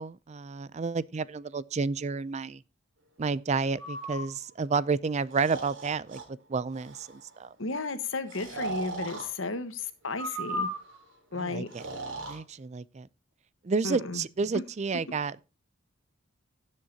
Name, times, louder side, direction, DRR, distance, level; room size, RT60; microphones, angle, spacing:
voice 1, 0.0-2.6 3.2-7.5 11.4-11.8 12.3-13.1 13.6-15.4, right 4 dB, 35° right, 0.4 m, -31 dB
Breathing, 3.8-4.3 5.3-6.2 6.7-7.1 8.3-9.3 10.1-11.0 11.7-12.4, right 1 dB, 65° right, 3.6 m, -36 dB
voice 2, 7.6-10.7 11.3-11.7 13.8-14.2 14.5-14.6, left 3 dB, 70° left, 1.3 m, -33 dB
16.5 x 7.5 x 2.8 m
head